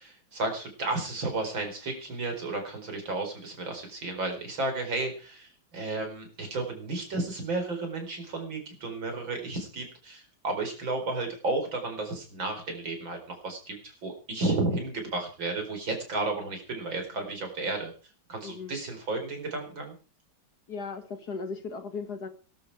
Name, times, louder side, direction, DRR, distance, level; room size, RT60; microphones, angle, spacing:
voice 1, 0.0-13.2 13.4-17.9 18.3-19.9, right 2 dB, 70° right, 5 dB, 5.2 m, -33 dB
voice 2, 18.4-18.8 20.7-22.3, left 4 dB, 55° left, 8 dB, 2.3 m, -37 dB
20.0 x 11.5 x 4.8 m, 0.36 s
omnidirectional pair, 2.2 m